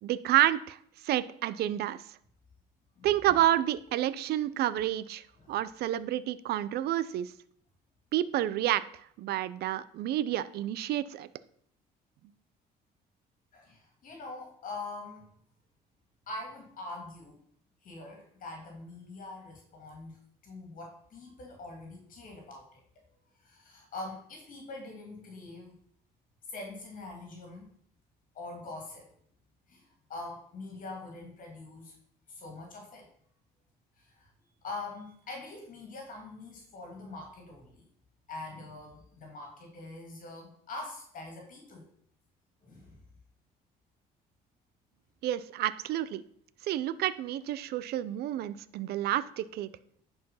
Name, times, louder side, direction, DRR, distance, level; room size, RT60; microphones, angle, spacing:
voice 1, 0.0-0.8 1.0-2.0 3.0-7.3 8.1-8.8 9.2-11.3 45.2-46.2 46.6-49.7, right 13 dB, 70° right, 16 dB, 0.6 m, -29 dB
voice 2, 13.5-15.2 16.3-17.4 17.8-22.8 23.3-25.7 26.5-27.7 28.3-29.1 29.7-31.9 32.3-33.1 34.0-34.3 34.6-37.8 38.3-41.9 42.6-43.0, left 2 dB, 55° left, 2 dB, 2.6 m, -44 dB
10.5 x 4.8 x 5.6 m, 0.64 s
cardioid pair, 110°, 17 cm